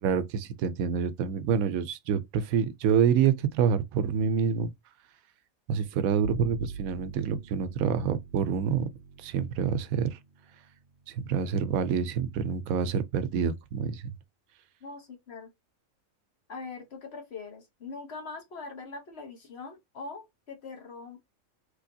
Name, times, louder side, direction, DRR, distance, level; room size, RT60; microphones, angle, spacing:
voice 1, 0.0-4.7 5.7-8.9 9.2-10.2 11.1-14.0, right 7 dB, 90° right, 1.0 m, -27 dB
Bowed string instrument, 6.2-12.7, right 6 dB, 55° right, 0.7 m, -45 dB
voice 2, 14.8-15.5 16.5-21.2, left 4 dB, 55° left, 1.2 m, -42 dB
3.2 x 3.1 x 2.6 m
omnidirectional pair, 1.4 m